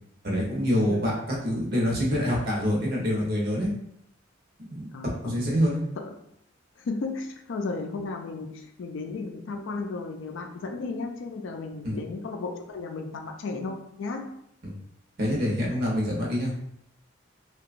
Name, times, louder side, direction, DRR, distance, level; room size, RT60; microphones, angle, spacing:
voice 1, 0.2-3.7 4.7-4.9 5.2-5.8 11.8-12.0 14.6-14.7 15.2-16.5, equal, 50° right, -2 dB, 0.8 m, -26 dB
voice 2, 6.8-14.3, left 3 dB, 70° left, 4 dB, 0.4 m, -34 dB
2.8 x 2.3 x 2.4 m, 0.74 s
head